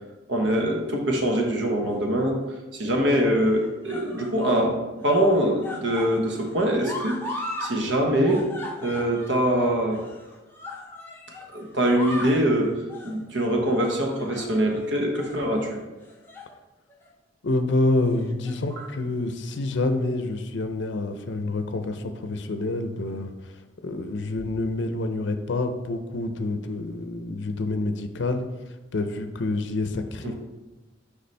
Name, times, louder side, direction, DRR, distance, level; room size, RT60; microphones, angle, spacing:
voice 1, 0.3-2.4 2.7-4.8 5.0-7.3 7.6-8.4 8.8-10.0 11.5-12.7 13.0-15.7 30.2-30.3, right 1 dB, 70° right, 1 dB, 1.1 m, -23 dB
sound 1, 1.9-2.5 3.4-4.6 5.0-7.7 8.0-11.5 11.8-12.4 12.9-13.2 13.8-14.8 15.2-15.4 16.0-16.5 16.9-17.1 18.2-18.8 19.7-19.8, left 1 dB, 10° left, 0.7 m, -38 dB
voice 2, 17.4-30.3, left 2 dB, 65° left, 8 dB, 0.5 m, -27 dB
6.7 x 4.9 x 3.3 m, 1.1 s
head